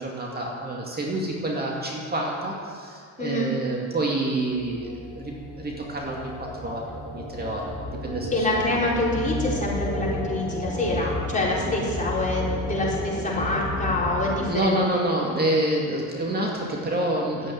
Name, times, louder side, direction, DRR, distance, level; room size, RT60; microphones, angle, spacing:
voice 1, 0.0-7.8 8.0-8.6 14.4-17.5, right 1 dB, 30° right, -2 dB, 2.5 m, -28 dB
voice 2, 3.2-3.5 8.3-15.0, left 2 dB, 25° left, -5 dB, 4.5 m, -26 dB
sound 1, 4.5-14.4, left 1 dB, 55° right, 3.8 m, -32 dB
12.0 x 8.7 x 9.1 m, 2.2 s
cardioid pair, 90°, 30 cm